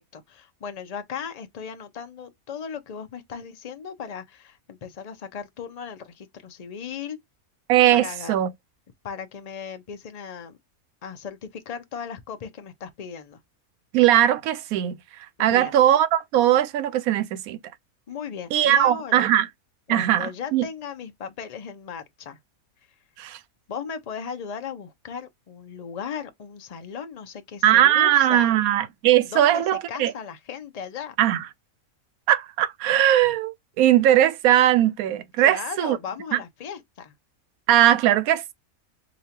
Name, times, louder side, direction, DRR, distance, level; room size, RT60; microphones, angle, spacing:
voice 1, 0.0-7.2 7.9-8.3 9.0-10.6 11.0-13.4 15.4-15.7 18.1-19.3 19.9-22.4 23.7-28.5 29.2-31.2 35.4-37.1, left 7 dB, 45° left, 0.5 m, -36 dB
voice 2, 7.7-8.5 13.9-15.0 15.4-17.6 18.5-19.5 19.9-20.6 23.2-23.4 27.6-30.1 31.2-31.5 32.3-36.0 36.3-36.4 37.7-38.5, right 12 dB, 80° right, 1.0 m, -19 dB
5.1 x 2.3 x 2.8 m
omnidirectional pair, 1.5 m